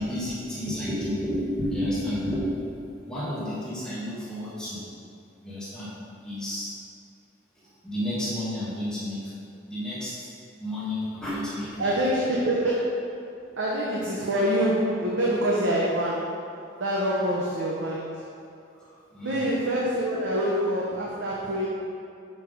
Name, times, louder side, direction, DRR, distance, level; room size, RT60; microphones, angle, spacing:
voice 1, 0.0-4.8 5.4-5.9 6.2-6.7 7.8-9.3 9.7-10.3 10.6-12.1 19.1-19.5, left 1 dB, 5° left, -10 dB, 1.3 m, -31 dB
voice 2, 11.8-13.0 13.6-16.4 16.8-18.2 18.8-18.9 19.2-21.7, equal, 85° right, -5 dB, 0.9 m, -26 dB
6.4 x 5.7 x 3.8 m, 2.5 s
head